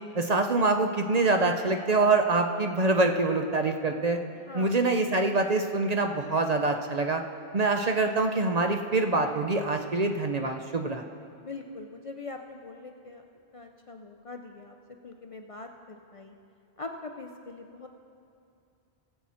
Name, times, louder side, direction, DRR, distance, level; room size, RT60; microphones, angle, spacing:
voice 1, 0.1-4.2 4.5-7.2 7.5-11.0, right 3 dB, 45° right, 5 dB, 0.6 m, -25 dB
voice 2, 4.4-4.8 11.4-13.2 13.5-14.7 15.0-16.4 16.8-17.9, left 3 dB, 40° left, 4 dB, 0.5 m, -42 dB
19.5 x 7.6 x 4.3 m, 2.4 s
omnidirectional pair, 1.1 m